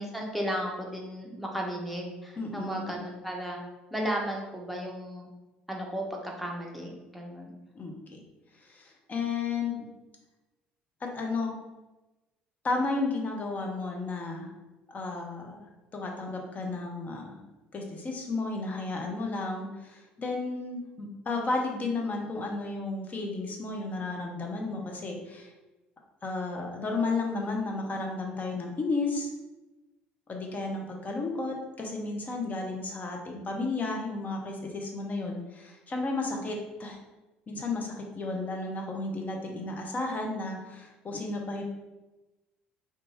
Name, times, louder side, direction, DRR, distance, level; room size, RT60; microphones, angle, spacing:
voice 1, 0.0-3.6 3.9-5.3 5.7-7.5, equal, ahead, 0 dB, 0.7 m, -34 dB
voice 2, 2.4-3.0 7.7-8.2 8.6-9.9 11.0-11.5 12.6-14.5 14.9-15.7 15.9-17.4 17.7-25.5 26.2-29.3 30.3-37.0 37.5-41.6, left 3 dB, 35° left, 1 dB, 0.6 m, -33 dB
2.5 x 2.3 x 3.0 m, 1.1 s
hypercardioid pair, 60°, 5 cm